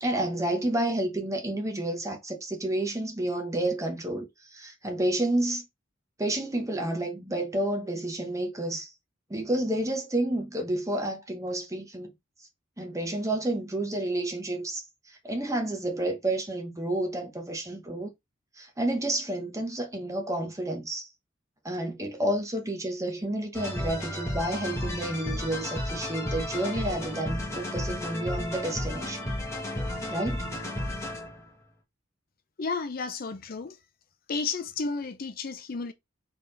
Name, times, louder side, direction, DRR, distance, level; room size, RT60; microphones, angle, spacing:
voice 1, 0.0-5.6 6.2-8.9 9.3-12.1 12.8-18.1 18.5-21.1 21.6-29.2 30.1-30.4, right 1 dB, 15° right, 1.0 m, -30 dB
sound 1, 23.5-31.5, left 1 dB, 15° left, 1.3 m, -33 dB
voice 2, 32.6-33.8 34.3-35.9, left 4 dB, 45° left, 0.5 m, -32 dB
3.9 x 3.5 x 3.9 m
head